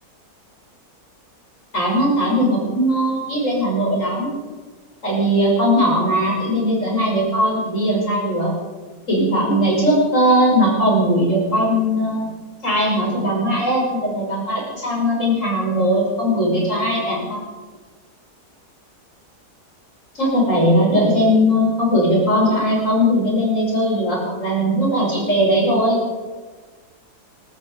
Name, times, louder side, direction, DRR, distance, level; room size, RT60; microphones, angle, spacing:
voice 1, 1.7-4.3 5.0-8.5 9.1-12.3 12.6-17.4 20.1-26.0, equal, 50° left, -3 dB, 6.4 m, -19 dB
20.5 x 13.0 x 5.3 m, 1.4 s
omnidirectional pair, 1.7 m